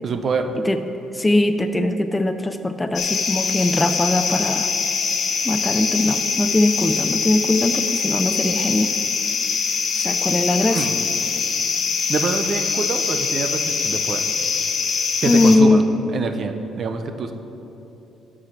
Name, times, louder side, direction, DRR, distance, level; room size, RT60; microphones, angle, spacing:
voice 1, 0.0-0.5 10.7-10.9 12.1-14.2 15.2-15.8 16.1-17.3, right 5 dB, 40° right, 7 dB, 0.7 m, -25 dB
voice 2, 1.1-4.7 5.4-8.9 9.9-10.9 15.3-15.8, left 2 dB, 10° left, 8 dB, 0.4 m, -20 dB
sound 1, 2.9-15.6, left 5 dB, 50° left, 1.0 m, -23 dB
12.0 x 4.9 x 5.9 m, 3.0 s
cardioid pair, 125°, 0 cm